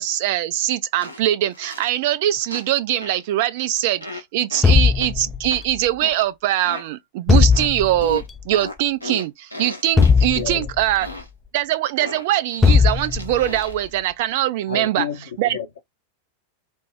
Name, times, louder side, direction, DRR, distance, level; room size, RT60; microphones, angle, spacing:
voice 1, 0.0-11.1 11.5-15.1 15.4-15.6, right 13 dB, 50° right, 0.5 m, -22 dB
sound 1, 1.0-1.2 1.5-1.9 2.5-2.7 3.0-3.2 4.0-4.2 4.5-4.7 5.0-5.1 5.5-5.6 6.0-6.2 6.5-6.8 7.5-7.7 8.0-10.4 11.0-11.3 12.0-13.9, left 2 dB, 90° right, 0.8 m, -35 dB
sound 2, 4.6-5.8 7.3-8.2 10.0-11.1 12.6-13.6, left 5 dB, 15° left, 0.3 m, -17 dB
voice 2, 10.3-10.7 14.7-15.8, left 7 dB, 65° left, 0.8 m, -30 dB
5.2 x 2.0 x 3.5 m
figure-of-eight pair, 90°, 0 cm